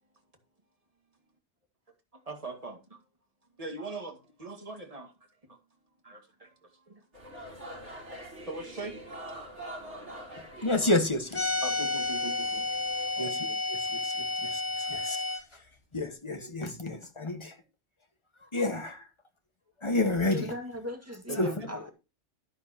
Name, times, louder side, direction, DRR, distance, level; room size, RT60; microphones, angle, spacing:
voice 1, 2.3-3.0 3.6-5.1 5.5-5.6 6.0-7.0 7.5-7.6 8.4-9.0 9.2-9.3 11.6-12.8 13.1-13.6 18.5-18.7 21.3-21.7, right 2 dB, 30° right, 2.1 m, -41 dB
sound 1, 7.1-13.1, equal, 75° right, 4.1 m, -45 dB
voice 2, 10.5-11.5 13.2-14.1 14.4-15.2 15.9-17.5 18.5-19.0 19.8-20.5 21.4-21.5, left 2 dB, 25° left, 1.5 m, -30 dB
sound 2, 11.3-15.4, left 3 dB, 75° left, 3.6 m, -31 dB
voice 3, 20.3-21.9, equal, 15° right, 2.0 m, -39 dB
11.0 x 10.5 x 2.9 m
omnidirectional pair, 1.2 m